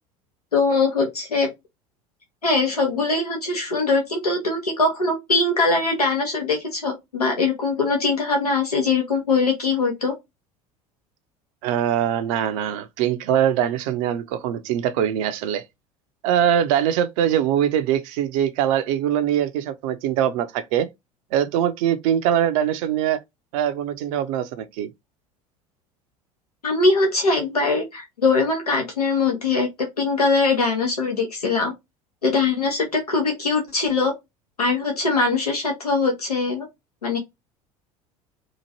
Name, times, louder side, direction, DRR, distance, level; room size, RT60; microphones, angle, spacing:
voice 1, 0.5-1.5 2.4-10.1 26.6-29.7 30.0-31.7 32.2-34.1 34.6-36.7 37.0-37.2, left 3 dB, 90° left, 0.7 m, -22 dB
voice 2, 11.6-15.6 16.2-20.9 21.3-23.2 23.5-24.9, right 10 dB, 60° right, 0.5 m, -22 dB
2.9 x 2.5 x 2.7 m
figure-of-eight pair, 70°, 19 cm